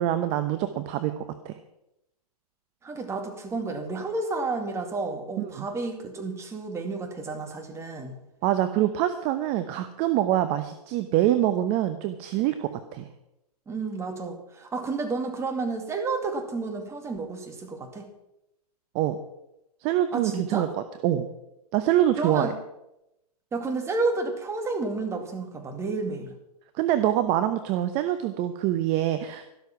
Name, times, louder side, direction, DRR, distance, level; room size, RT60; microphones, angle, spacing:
voice 1, 0.0-1.6 5.4-5.6 8.4-13.1 18.9-19.2 19.8-20.7 21.0-21.3 21.7-22.5 26.8-29.4, right 12 dB, 30° right, 10 dB, 0.9 m, -25 dB
voice 2, 2.8-8.2 13.7-18.1 20.1-20.7 22.2-22.5 23.5-26.3, right 3 dB, 15° right, 4 dB, 2.2 m, -31 dB
13.0 x 12.5 x 5.9 m, 0.87 s
hypercardioid pair, 130°, 21 cm